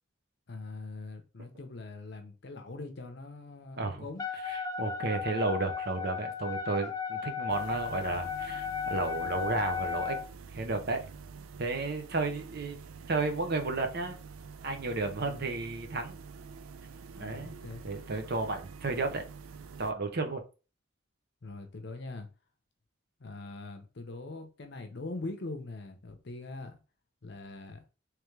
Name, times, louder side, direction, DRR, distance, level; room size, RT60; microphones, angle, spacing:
voice 1, 0.5-4.2 15.0-15.4 17.2-17.9 21.4-22.3 23.2-26.8 27.2-27.8, left 2 dB, 55° left, 0.7 m, -42 dB
Wind instrument woodwind instrument, 4.2-10.3, left 7 dB, 20° left, 0.4 m, -35 dB
voice 2, 4.5-10.2 10.5-11.0 11.6-12.8 13.1-14.2 14.6-16.2 17.2-17.5 17.8-19.2 19.8-20.4, right 3 dB, 50° right, 0.6 m, -32 dB
sound 1, 7.5-19.9, right 5 dB, 90° right, 0.4 m, -47 dB
3.4 x 3.2 x 3.2 m
head